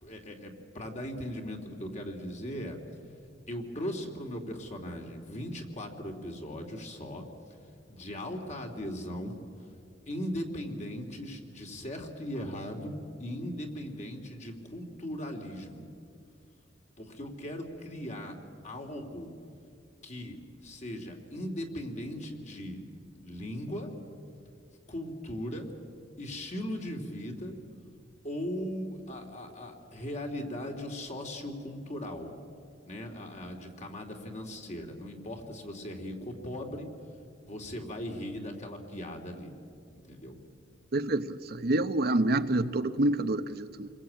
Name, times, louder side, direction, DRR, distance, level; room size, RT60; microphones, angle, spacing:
voice 1, 0.0-2.8 3.5-7.2 7.9-9.3 10.1-12.9 13.2-15.9 17.0-18.4 18.6-19.3 20.0-22.8 23.2-23.9 24.9-25.7 26.2-27.6 28.2-32.4 32.8-36.9 37.4-39.5 39.9-40.4, equal, 40° left, 3 dB, 3.1 m, -38 dB
voice 2, 40.9-43.9, right 2 dB, 55° right, 10 dB, 0.9 m, -27 dB
28.5 x 21.5 x 8.9 m, 2.4 s
head